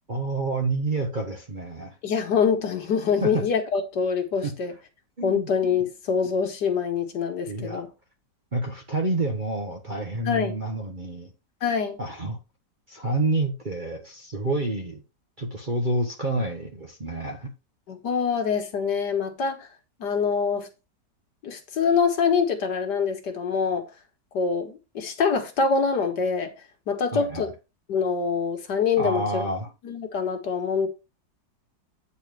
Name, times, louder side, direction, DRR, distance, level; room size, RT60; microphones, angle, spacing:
voice 1, 0.1-2.0 3.2-3.4 4.4-4.5 5.2-5.5 7.5-7.8 8.5-11.3 12.0-12.4 12.9-15.0 15.4-17.5 27.1-27.5 29.0-29.7, right 2 dB, 30° right, 1.1 m, -28 dB
voice 2, 2.0-4.7 5.2-7.9 10.3-10.6 11.6-12.0 17.9-19.7 20.0-20.7 21.4-23.9 24.3-26.5 26.9-27.5 27.9-29.5 29.8-30.9, left 6 dB, 70° left, 1.9 m, -25 dB
9.0 x 4.2 x 4.8 m
omnidirectional pair, 1.9 m